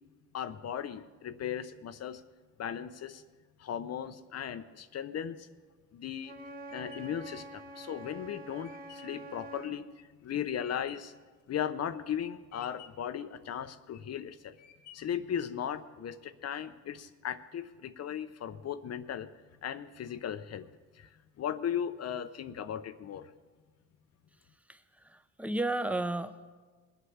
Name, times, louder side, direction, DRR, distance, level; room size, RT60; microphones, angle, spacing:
voice 1, 0.3-2.2 2.6-3.2 3.6-5.5 5.9-6.3 6.7-11.1 11.5-14.6 14.9-19.3 19.6-20.7 20.9-21.1 21.4-23.3, left 9 dB, 55° left, 11 dB, 0.7 m, -37 dB
sound 1, 5.8-11.2 11.7-12.2 12.5-13.2 13.7-14.2 14.6-15.3, left 10 dB, 75° left, 1.3 m, -56 dB
Wind instrument woodwind instrument, 6.2-9.8, right 2 dB, 30° right, 1.4 m, -46 dB
voice 2, 24.7-26.5, right 2 dB, 5° right, 11 dB, 0.9 m, -34 dB
21.0 x 8.1 x 7.1 m, 1.4 s
cardioid pair, 90°, 30 cm